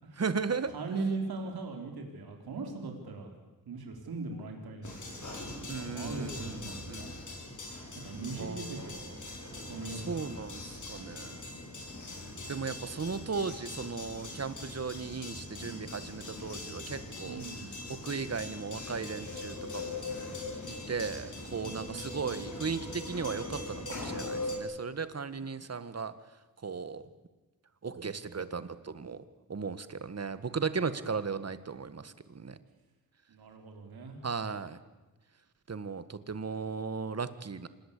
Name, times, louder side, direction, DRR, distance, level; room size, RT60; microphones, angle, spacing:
voice 1, 0.2-0.7 5.7-7.2 8.4-8.9 10.0-11.4 12.5-17.4 17.9-20.1 20.7-26.1 26.6-27.0 27.8-29.2 29.5-32.6 34.2-34.8 35.7-37.7, right 5 dB, 45° right, 13 dB, 1.8 m, -36 dB
voice 2, 0.7-3.3 3.7-5.2 5.6-7.1 8.0-9.0 9.7-10.2 14.9-15.0 17.2-17.7 21.6-22.4 33.3-34.2, right 3 dB, 90° right, 3 dB, 4.1 m, -39 dB
sound 1, 4.8-24.6, left 2 dB, 55° left, 6.9 m, -41 dB
26.5 x 20.5 x 8.5 m, 1.2 s
cardioid pair, 70°, 36 cm